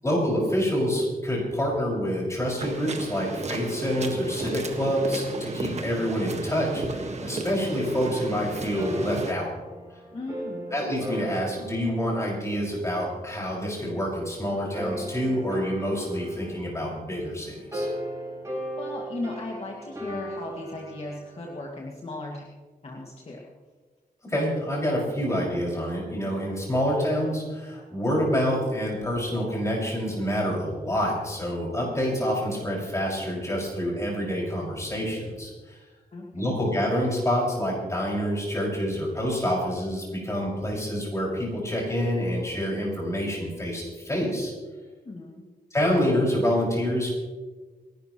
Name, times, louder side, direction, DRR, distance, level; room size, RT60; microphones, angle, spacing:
voice 1, 0.0-9.5 10.7-17.9 24.2-35.8 36.3-44.5 45.7-47.1, equal, 20° left, -3 dB, 6.1 m, -27 dB
sound 1, 2.6-9.3, right 3 dB, 45° right, 1.7 m, -33 dB
sound 2, 8.7-13.4 14.5-21.7, right 1 dB, 20° right, 4.3 m, -37 dB
voice 2, 10.1-10.8 18.8-22.5 22.8-23.4 36.1-36.6 44.9-45.4, left 2 dB, 40° left, -2 dB, 2.2 m, -37 dB
28.0 x 12.0 x 3.1 m, 1.3 s
wide cardioid pair, 135°, 16 cm